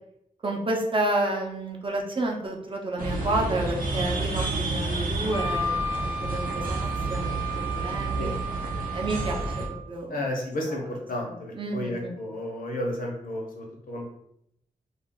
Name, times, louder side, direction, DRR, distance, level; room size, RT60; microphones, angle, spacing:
voice 1, 0.4-8.4 8.9-10.3 10.7-10.8 11.2-12.1, right 2 dB, 35° right, 0 dB, 0.6 m, -30 dB
sound 1, 3.0-9.7, right 2 dB, 85° right, 0.6 m, -30 dB
Wind instrument woodwind instrument, 5.3-9.8, right 1 dB, 35° left, 0.4 m, -33 dB
voice 2, 10.1-14.0, left 1 dB, 85° left, 0 dB, 0.8 m, -32 dB
2.4 x 2.3 x 3.6 m, 0.76 s
wide cardioid pair, 115°, 14 cm